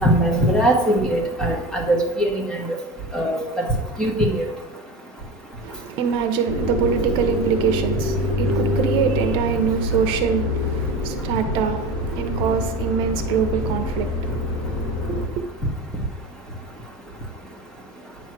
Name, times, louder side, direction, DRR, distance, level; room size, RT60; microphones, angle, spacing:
voice 1, 0.0-2.6 3.1-3.4 4.0-4.4, right 1 dB, 5° left, 1.2 m, -20 dB
voice 2, 5.6-15.5, right 7 dB, 55° right, 0.8 m, -24 dB
sound 1, 6.5-15.3, left 2 dB, 70° left, 1.8 m, -25 dB
9.0 x 3.1 x 6.0 m
cardioid pair, 150°, 10 cm